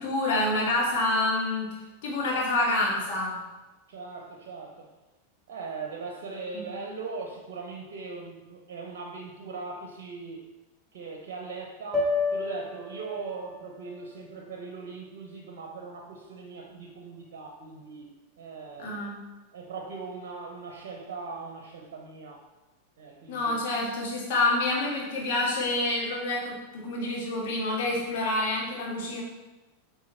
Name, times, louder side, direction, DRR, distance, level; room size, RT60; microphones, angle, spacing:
voice 1, 0.0-1.7 2.0-3.4 6.5-6.6 18.8-19.2 23.3-29.2, left 2 dB, 50° left, -3 dB, 2.1 m, -27 dB
voice 2, 3.9-4.9 5.5-10.5 10.9-18.1 18.4-19.0 19.5-22.4 23.0-23.6, right 4 dB, 50° right, 2 dB, 1.0 m, -40 dB
sound 1, 11.9-16.2, left 3 dB, 25° right, 1.3 m, -33 dB
7.8 x 3.8 x 4.2 m, 1.1 s
figure-of-eight pair, 90°, 0 cm